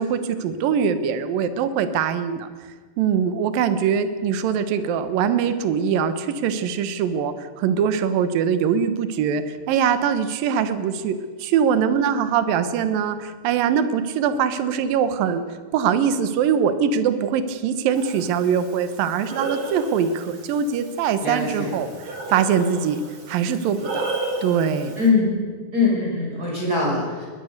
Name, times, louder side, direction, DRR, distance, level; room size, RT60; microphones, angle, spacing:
voice 1, 0.0-2.5 3.0-23.0 23.3-24.1 24.4-25.0, right 7 dB, 65° right, 10 dB, 2.4 m, -22 dB
Breathing, 17.9-25.1, right 2 dB, 40° right, 3.7 m, -34 dB
voice 2, 21.2-21.8 25.0-25.4 25.7-27.3, left 3 dB, 20° right, -3 dB, 5.8 m, -22 dB
21.5 x 20.5 x 6.7 m, 1.5 s
omnidirectional pair, 5.4 m